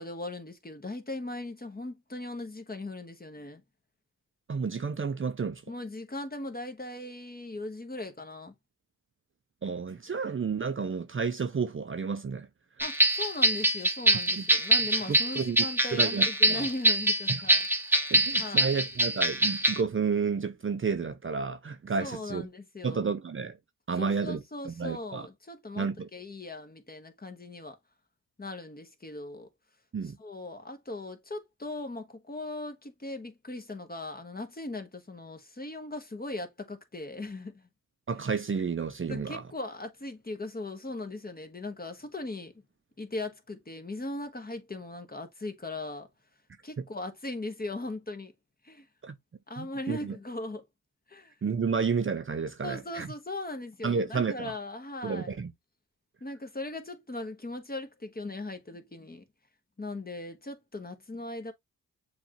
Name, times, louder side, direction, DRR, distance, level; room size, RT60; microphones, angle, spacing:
voice 1, 0.0-3.6 5.7-8.5 12.8-18.7 22.0-23.1 24.0-27.8 28.4-29.5 30.2-37.7 39.1-42.5 43.0-46.1 46.6-48.3 48.6-48.9 49.5-50.6 51.1-51.3 52.6-55.3 56.2-59.2 59.8-61.5, left 2 dB, 25° left, 1.1 m, -39 dB
voice 2, 4.5-5.6 9.6-12.5 14.4-14.5 15.1-15.7 15.9-16.7 17.3-17.4 18.1-22.5 22.8-23.6 23.9-25.3 25.8-26.1 29.9-30.2 38.1-39.4 49.0-49.2 49.6-50.2 51.4-53.1 53.8-54.5 55.0-55.5, right 5 dB, 35° right, 0.6 m, -31 dB
sound 1, 12.8-19.8, right 1 dB, 5° right, 0.9 m, -24 dB
7.0 x 2.5 x 2.9 m
cardioid pair, 50°, 35 cm